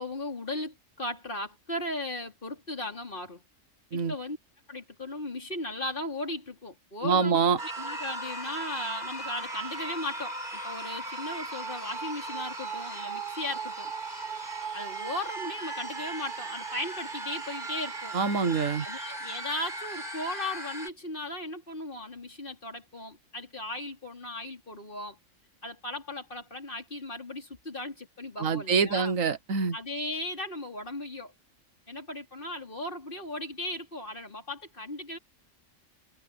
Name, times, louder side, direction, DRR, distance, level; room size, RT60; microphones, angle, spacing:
voice 1, 0.0-3.4 3.9-4.4 4.7-7.4 7.6-13.9 14.7-18.2 18.8-25.2 25.6-29.1 29.7-31.3 31.9-35.2, left 1 dB, 40° left, 4.2 m, -37 dB
voice 2, 7.0-7.6 18.1-18.9 28.4-29.8, right 5 dB, 85° right, 1.6 m, -25 dB
sound 1, 7.6-20.9, right 3 dB, 40° right, 4.5 m, -37 dB
omnidirectional pair, 1.3 m